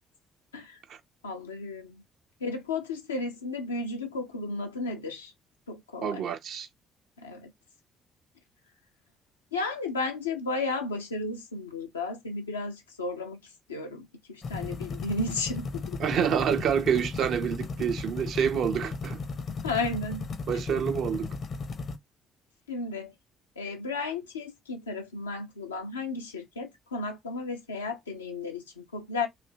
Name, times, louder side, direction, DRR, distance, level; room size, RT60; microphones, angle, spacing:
voice 1, 1.2-2.0 2.4-5.3 5.7-6.3 7.2-7.5 9.5-13.4 13.7-16.0 19.6-20.2 20.5-20.6 22.7-23.1 23.6-29.3, left 3 dB, 85° left, 0.6 m, -34 dB
voice 2, 6.0-6.7 16.0-19.2 20.5-21.3, right 8 dB, 55° right, 0.6 m, -27 dB
sound 1, 14.4-22.0, left 4 dB, 50° left, 0.7 m, -35 dB
3.2 x 2.6 x 2.7 m
figure-of-eight pair, 45°, 0 cm